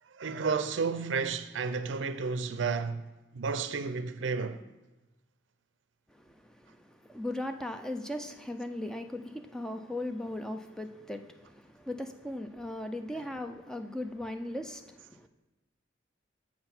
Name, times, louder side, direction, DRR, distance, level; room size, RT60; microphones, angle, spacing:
voice 1, 0.2-3.1 3.3-4.6 13.1-13.2, right 5 dB, 75° right, 0.5 m, -32 dB
voice 2, 6.2-15.3, left 1 dB, 5° left, 0.3 m, -38 dB
7.6 x 5.8 x 4.3 m
head